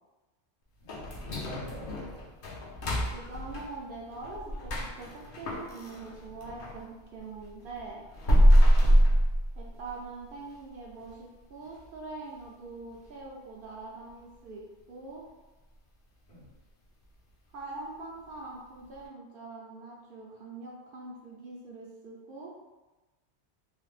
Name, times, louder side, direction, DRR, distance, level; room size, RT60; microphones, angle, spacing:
voice 1, 0.8-2.3 8.8-9.0 16.3-16.5, equal, 75° left, -7 dB, 1.4 m, -45 dB
sound 1, 0.9-6.8 7.2-10.0 10.4-10.5 11.0-11.1 11.6-11.9 12.3-12.4 12.9-13.0, equal, 60° left, 0.7 m, -25 dB
voice 2, 3.1-8.0 9.6-15.2 17.5-22.5, right 3 dB, 60° right, -3 dB, 0.7 m, -43 dB
3.2 x 2.1 x 3.2 m, 1.1 s
omnidirectional pair, 1.1 m